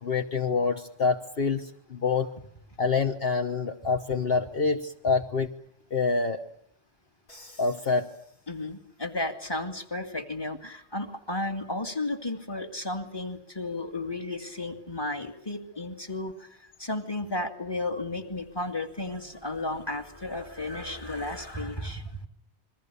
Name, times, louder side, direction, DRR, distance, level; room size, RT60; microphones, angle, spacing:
voice 1, 0.0-2.3 2.8-5.5 5.9-6.4 7.6-8.1, left 4 dB, 55° left, 5 dB, 1.4 m, -26 dB
Crash cymbal, 7.3-9.0, left 1 dB, 75° left, 8.4 m, -54 dB
voice 2, 8.5-16.3 16.8-22.3, left 2 dB, 20° left, 5 dB, 2.2 m, -33 dB
28.0 x 22.5 x 6.9 m, 0.68 s
omnidirectional pair, 1.2 m